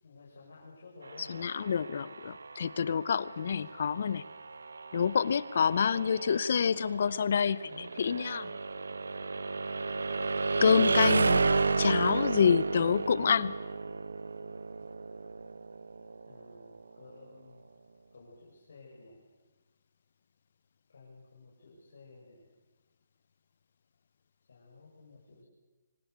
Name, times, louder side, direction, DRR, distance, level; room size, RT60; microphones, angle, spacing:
voice 1, 0.0-1.3 16.3-17.6 18.1-19.2 20.9-22.4 24.5-25.5, left 3 dB, 60° left, -5 dB, 6.9 m, -54 dB
sound 1, 1.0-16.8, right 4 dB, 85° right, 1.2 m, -33 dB
voice 2, 1.2-4.2 4.9-8.5 10.6-11.5 11.8-13.5, left 7 dB, 45° left, 19 dB, 0.8 m, -27 dB
25.0 x 19.0 x 8.2 m, 1.2 s
hypercardioid pair, 170°, 0 cm